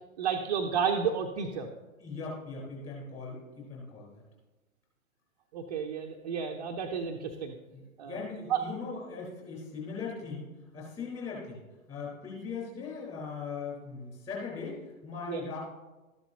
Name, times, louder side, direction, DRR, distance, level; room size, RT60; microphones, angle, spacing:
voice 1, 0.2-1.7 5.5-7.5 8.0-8.2 8.5-8.6 15.3-15.4, right 7 dB, 30° right, 2 dB, 0.6 m, -31 dB
voice 2, 2.0-4.2 7.7-7.8 8.1-10.5 10.7-11.6 11.9-15.6, left 4 dB, 15° left, -4 dB, 4.0 m, -39 dB
13.0 x 11.0 x 2.8 m, 1.1 s
figure-of-eight pair, 115°, 41 cm